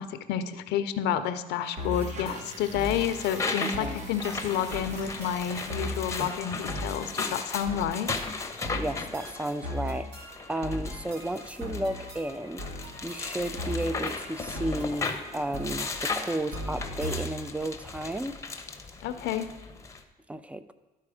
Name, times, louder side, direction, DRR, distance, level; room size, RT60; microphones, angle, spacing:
voice 1, 0.0-8.1 19.0-19.5, left 9 dB, 85° left, 10 dB, 0.6 m, -30 dB
sound 1, 1.7-6.1, right 3 dB, 45° right, 1.1 m, -45 dB
sound 2, 1.8-17.5, left 1 dB, 80° right, 1.9 m, -39 dB
sound 3, 2.6-20.0, left 4 dB, 15° left, 0.8 m, -36 dB
voice 2, 3.6-4.0 8.8-12.6 13.0-18.4 20.3-20.7, right 1 dB, 5° right, 12 dB, 0.4 m, -33 dB
12.0 x 4.4 x 4.9 m, 1.2 s
cardioid pair, 110°, 17 cm